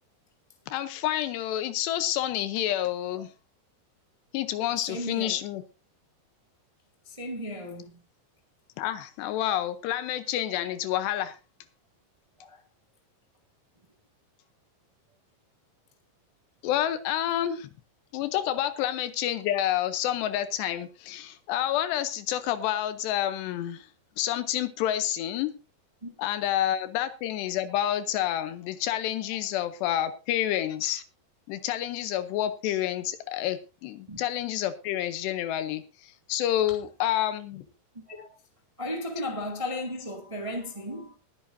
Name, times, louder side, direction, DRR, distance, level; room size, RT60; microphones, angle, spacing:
voice 1, 0.7-3.3 4.3-5.6 8.8-11.4 16.6-17.7 18.1-23.9 24.2-25.5 26.2-31.0 31.5-37.6, left 12 dB, 85° left, 3.0 m, -29 dB
voice 2, 4.9-5.4 7.0-7.9 12.4-12.6 26.0-26.1 34.1-34.2 38.1-38.3 38.8-41.1, left 1 dB, 35° right, 0.5 m, -35 dB
20.0 x 10.5 x 2.7 m
omnidirectional pair, 4.8 m